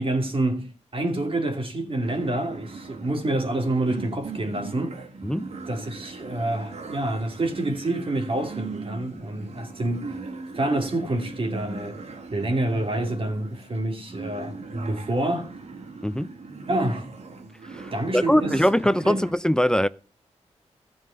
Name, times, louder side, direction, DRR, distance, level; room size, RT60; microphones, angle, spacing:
voice 1, 0.0-5.0 5.7-10.2 10.5-12.0 12.3-15.5 16.7-17.0 17.9-18.6 19.0-19.2, right 1 dB, 45° right, 2.7 m, -27 dB
sound 1, 2.0-19.3, right 4 dB, 60° right, 2.0 m, -39 dB
voice 2, 17.7-19.9, equal, 5° left, 0.5 m, -22 dB
14.5 x 5.5 x 6.8 m
cardioid pair, 65°, 12 cm